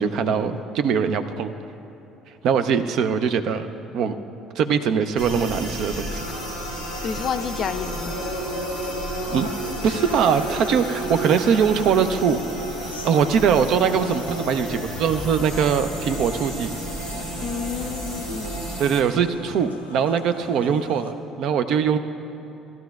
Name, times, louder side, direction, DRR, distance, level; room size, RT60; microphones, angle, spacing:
voice 1, 0.0-1.5 2.4-3.7 3.9-4.1 4.6-6.2 9.3-9.5 9.8-12.4 13.0-16.8 18.8-22.0, right 7 dB, 55° right, 10 dB, 0.5 m, -22 dB
sound 1, 5.1-21.1, right 1 dB, 90° left, 0.7 m, -36 dB
sound 2, 5.2-19.0, equal, 90° right, 1.7 m, -33 dB
voice 2, 7.0-8.1 17.4-18.6, left 7 dB, 45° left, 11 dB, 0.4 m, -29 dB
17.0 x 12.0 x 2.3 m, 2.9 s
figure-of-eight pair, 55°, 0 cm